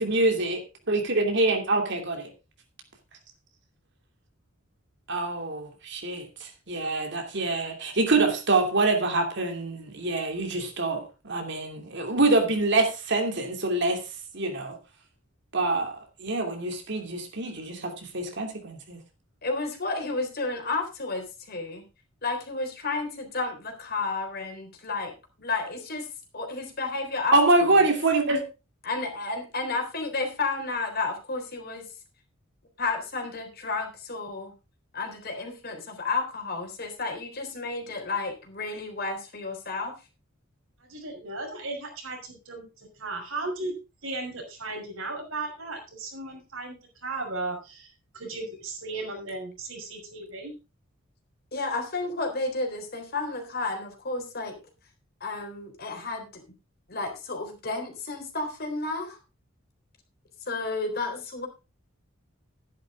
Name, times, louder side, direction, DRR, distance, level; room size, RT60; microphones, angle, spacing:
voice 1, 0.0-0.6 0.9-2.3 5.1-14.0 14.3-14.8 15.5-19.0 27.3-28.4, right 2 dB, 55° right, 2.7 m, -25 dB
voice 2, 19.4-21.8 22.2-27.9 28.8-31.9 32.8-34.5 34.9-39.9 51.5-54.6 55.2-56.4 56.9-59.2 60.4-61.5, left 3 dB, 50° left, 3.6 m, -32 dB
voice 3, 40.8-43.7 44.0-46.8 47.0-50.5, right 2 dB, 75° right, 5.8 m, -36 dB
12.5 x 10.5 x 3.7 m
head